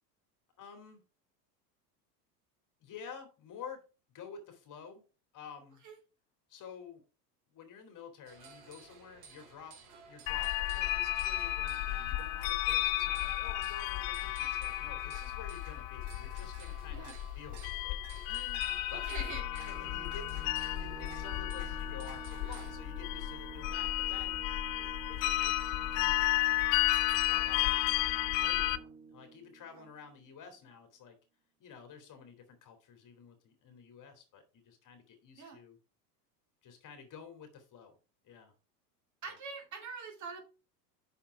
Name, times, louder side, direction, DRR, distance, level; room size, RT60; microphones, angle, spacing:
voice 1, 0.6-1.0 2.8-3.8 4.1-5.0 5.3-5.8 6.5-7.0 7.5-9.8 10.1-18.0 18.3-19.0 19.5-24.4 24.8-26.6 27.1-31.2 31.6-35.8 36.6-38.0 38.2-38.5, left 6 dB, 40° left, 6 dB, 2.7 m, -51 dB
sound 1, 8.2-22.7, right 5 dB, 65° right, 3.4 m, -55 dB
sound 2, 10.3-28.8, left 16 dB, 55° left, 0.7 m, -33 dB
voice 2, 18.9-19.7 22.4-22.6 29.7-29.9 35.4-35.6 39.2-40.4, right 5 dB, 35° right, 3 dB, 2.4 m, -44 dB
sound 3, 19.2-30.5, right 4 dB, 20° right, 1.0 m, -50 dB
6.1 x 5.7 x 4.8 m, 0.33 s
hypercardioid pair, 95°, 50 cm